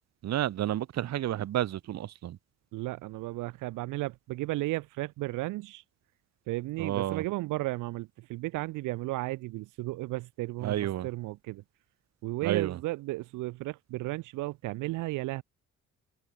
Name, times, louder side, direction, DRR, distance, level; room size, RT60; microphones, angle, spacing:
voice 1, 0.2-2.4 6.8-7.2 10.6-11.1 12.4-12.8, right 12 dB, 60° right, 0.9 m, -30 dB
voice 2, 2.7-5.8 6.5-11.6 12.2-15.4, right 19 dB, 85° right, 0.5 m, -34 dB
cardioid pair, 90°, 30 cm